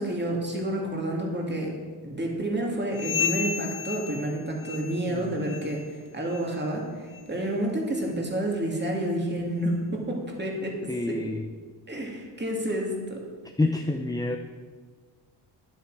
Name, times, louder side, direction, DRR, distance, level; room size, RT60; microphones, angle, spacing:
voice 1, 0.0-1.7 2.0-11.2 11.9-13.2, right 1 dB, 25° right, -1 dB, 2.6 m, -29 dB
sound 1, 2.9-5.2 5.4-5.8 6.3-6.5 7.1-7.3 7.9-8.0 8.8-8.9, left 7 dB, 70° left, 3.9 m, -33 dB
voice 2, 10.9-11.4 13.6-14.4, left 2 dB, 10° left, 5 dB, 0.5 m, -27 dB
12.0 x 10.5 x 5.0 m, 1.5 s
wide cardioid pair, 130°, 45 cm